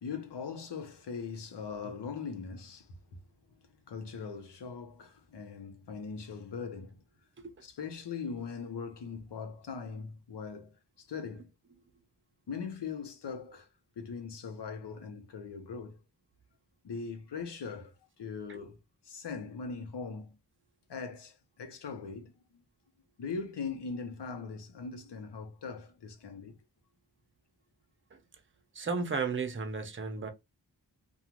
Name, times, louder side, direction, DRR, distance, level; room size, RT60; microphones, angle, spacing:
voice 1, 0.0-2.9 3.9-7.0 7.6-11.5 12.5-13.7 14.0-16.0 16.8-18.8 19.0-20.4 20.9-22.6 23.2-26.6, left 5 dB, 80° left, 0.8 m, -40 dB
voice 2, 28.7-30.3, right 4 dB, 30° right, 0.6 m, -34 dB
2.4 x 2.3 x 2.9 m
wide cardioid pair, 85°, 41 cm